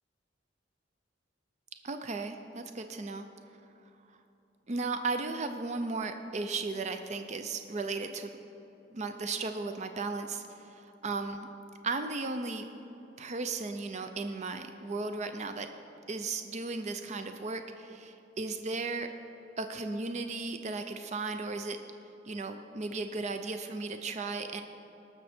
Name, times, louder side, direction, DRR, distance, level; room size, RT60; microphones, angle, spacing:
voice 1, 1.8-3.3 4.7-8.3 8.9-11.5 11.8-12.7 13.2-15.7 16.1-19.1 19.6-21.8 22.3-24.6, right 3 dB, 40° right, 7 dB, 0.5 m, -35 dB
18.5 x 6.7 x 4.3 m, 2.8 s
head